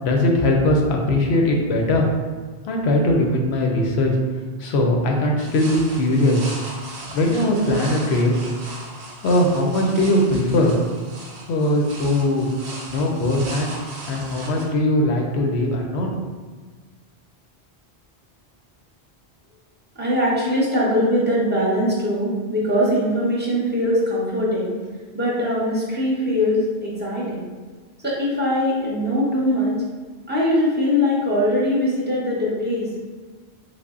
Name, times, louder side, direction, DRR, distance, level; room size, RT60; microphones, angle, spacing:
voice 1, 0.0-2.1 2.7-4.1 4.6-6.4 7.1-8.3 9.2-10.8 11.5-12.5 12.9-13.7 14.1-16.2, left 1 dB, 80° left, 1 dB, 0.9 m, -20 dB
sound 1, 5.4-14.7, right 2 dB, 85° right, 0.9 m, -37 dB
voice 2, 20.0-24.7 25.1-27.4 28.0-29.8 30.3-33.1, left 1 dB, 10° right, -6 dB, 0.7 m, -21 dB
3.4 x 2.1 x 3.6 m, 1.4 s
omnidirectional pair, 1.1 m